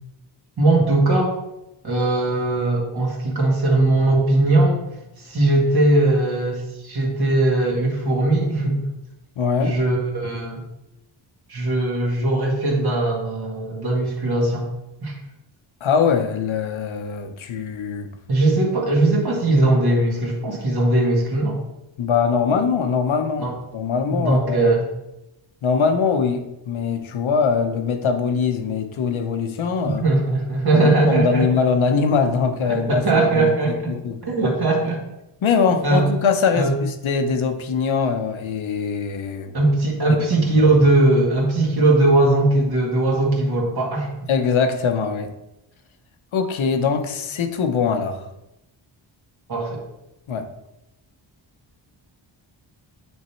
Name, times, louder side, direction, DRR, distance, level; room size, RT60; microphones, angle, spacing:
voice 1, 0.6-1.3 1.8-4.8 5.2-8.8 9.6-10.6 11.5-14.7 15.0-15.1 18.3-21.6 23.4-23.5 24.1-24.8 29.8-31.5 32.7-33.9 34.3-35.0 35.8-36.0 36.6-36.7 39.5-44.1 49.5-49.8, right 2 dB, 50° right, 2.0 m, -19 dB
voice 2, 9.4-9.8 15.8-18.1 22.0-23.5 23.7-24.7 25.6-30.0 30.7-33.0 33.3-34.2 35.4-39.5 40.4-40.7 44.3-45.3 46.3-48.3 50.3-50.5, left 5 dB, 80° left, 0.9 m, -22 dB
9.3 x 3.6 x 4.4 m
wide cardioid pair, 125°, 47 cm